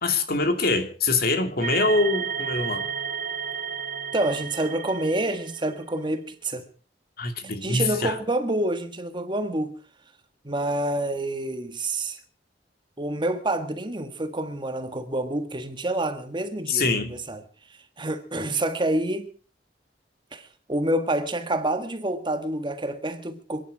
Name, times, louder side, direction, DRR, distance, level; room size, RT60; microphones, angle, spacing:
voice 1, 0.0-2.9 7.2-8.2 16.7-17.2, left 3 dB, 55° left, 2.6 m, -24 dB
sound 1, 1.6-5.9, right 7 dB, 45° right, 1.2 m, -32 dB
voice 2, 4.1-6.7 7.6-9.7 10.4-12.2 13.0-17.4 18.0-19.3 20.3-23.6, right 1 dB, 25° right, 1.6 m, -28 dB
27.5 x 10.5 x 4.8 m
head